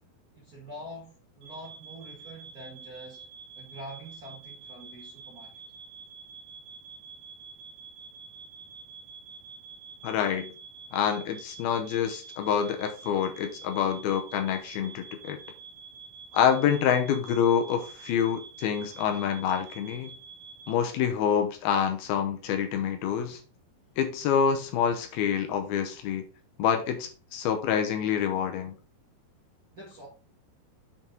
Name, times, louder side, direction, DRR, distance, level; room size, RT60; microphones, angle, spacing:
voice 1, 0.3-3.2 3.5-5.5 29.7-30.1, equal, 35° right, 1.5 m, -45 dB
sound 1, 1.4-20.7, right 5 dB, 75° right, 2.8 m, -47 dB
voice 2, 10.0-10.5 10.9-15.4 16.3-20.2 20.7-23.4 24.0-26.3 26.6-28.7, left 8 dB, 75° left, 2.6 m, -27 dB
7.2 x 5.1 x 3.8 m
omnidirectional pair, 4.6 m